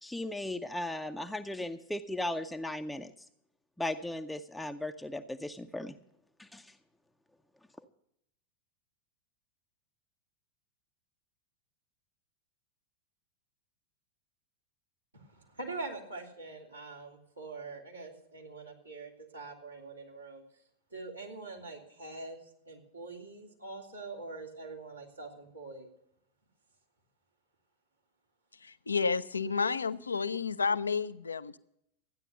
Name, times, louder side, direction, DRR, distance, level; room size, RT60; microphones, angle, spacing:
voice 1, 0.0-3.1 3.8-6.0 6.4-6.8, left 1 dB, 5° left, 6 dB, 0.6 m, -37 dB
voice 2, 15.1-20.4 20.9-25.9, right 3 dB, 85° right, -3 dB, 3.0 m, -44 dB
voice 3, 28.6-31.6, left 5 dB, 75° left, 14 dB, 0.5 m, -31 dB
13.5 x 9.9 x 6.7 m, 0.76 s
figure-of-eight pair, 90°, 0 cm